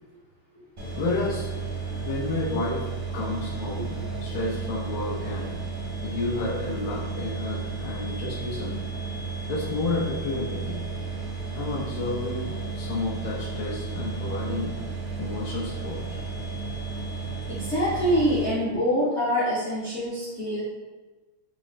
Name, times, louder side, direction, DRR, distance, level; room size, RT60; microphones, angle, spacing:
sound 1, 0.8-18.5, right 4 dB, 65° right, 0.4 m, -33 dB
voice 1, 1.0-1.5 1.9-2.8 3.1-5.6 6.0-8.8 9.5-10.8 11.5-14.8 15.2-16.2, left 3 dB, 85° left, -6 dB, 1.6 m, -31 dB
voice 2, 17.5-20.6, equal, 70° left, -9 dB, 0.6 m, -25 dB
4.2 x 2.4 x 3.0 m, 1.2 s
omnidirectional pair, 2.3 m